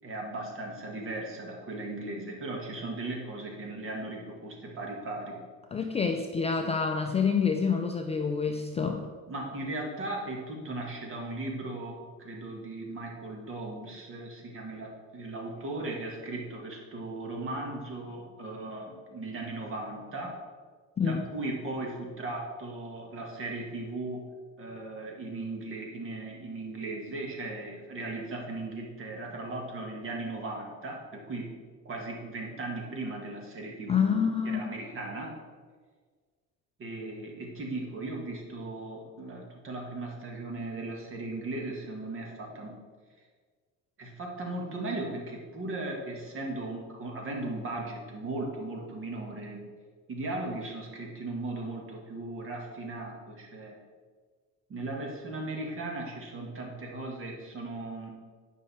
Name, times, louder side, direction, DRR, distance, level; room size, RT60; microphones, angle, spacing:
voice 1, 0.0-5.4 9.3-20.4 21.0-24.2 24.6-31.6 31.8-35.3 36.8-42.8 44.0-49.7 50.1-53.8 54.7-58.1, right 2 dB, 40° right, 0 dB, 1.8 m, -37 dB
voice 2, 5.7-9.0 21.0-21.2 33.9-34.6, left 6 dB, 20° left, 3 dB, 0.4 m, -27 dB
9.2 x 5.5 x 4.3 m, 1.6 s
cardioid pair, 140°, 33 cm